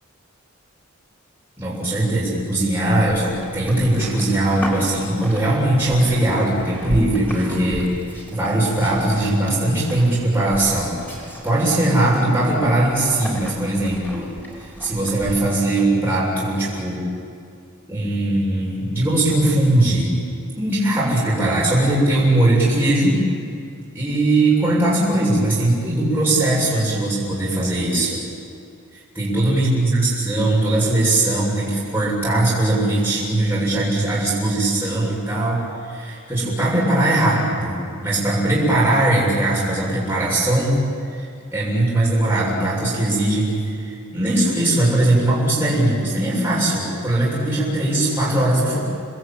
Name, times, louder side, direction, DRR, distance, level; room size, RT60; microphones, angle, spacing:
voice 1, 1.6-14.3 14.6-17.0 17.9-20.1 20.6-23.2 23.9-28.2 28.9-40.8 41.1-48.8, right 1 dB, 10° right, -7 dB, 6.8 m, -20 dB
Livestock farm animals working animals, 2.9-15.3, equal, 10° left, 4.5 m, -35 dB
29.5 x 20.5 x 9.0 m, 2.4 s
head